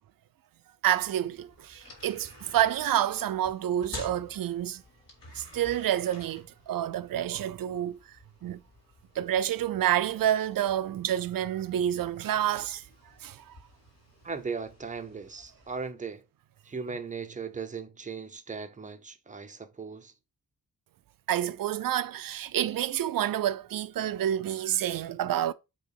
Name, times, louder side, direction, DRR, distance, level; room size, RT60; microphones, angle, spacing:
sound 1, 0.8-15.9, left 2 dB, 45° left, 3.1 m, -51 dB
voice 1, 0.8-4.8 5.3-8.0 8.4-8.6 9.2-12.8 13.2-13.4 21.3-25.5, right 11 dB, 70° right, 0.6 m, -28 dB
voice 2, 14.2-16.2 16.7-20.1, right 5 dB, 20° right, 0.7 m, -38 dB
8.1 x 3.1 x 4.7 m
wide cardioid pair, 145°, 35 cm